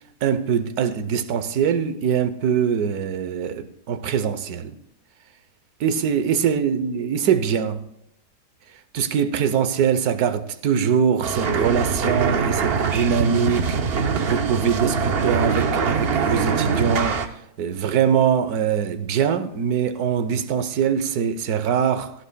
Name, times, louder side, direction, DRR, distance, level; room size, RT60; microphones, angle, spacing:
voice 1, 0.2-4.7 5.8-7.8 8.9-17.2 17.6-22.1, right 7 dB, 70° right, 1.3 m, -23 dB
sound 1, 11.2-17.3, right 5 dB, 50° right, 0.8 m, -23 dB
16.0 x 14.0 x 2.2 m
omnidirectional pair, 1.7 m